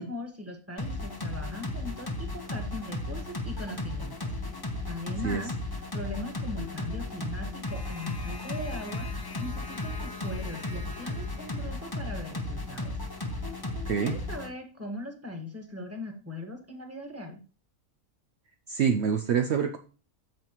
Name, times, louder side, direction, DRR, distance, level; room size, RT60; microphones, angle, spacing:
voice 1, 0.0-4.3 4.9-5.5 5.9-13.0 14.0-17.4, left 1 dB, 10° right, 3 dB, 1.5 m, -40 dB
sound 1, 0.8-14.5, left 2 dB, 20° left, 0.9 m, -35 dB
voice 2, 13.9-14.2 18.7-19.8, right 7 dB, 65° right, 7 dB, 0.8 m, -26 dB
8.8 x 7.2 x 3.0 m, 0.36 s
omnidirectional pair, 1.4 m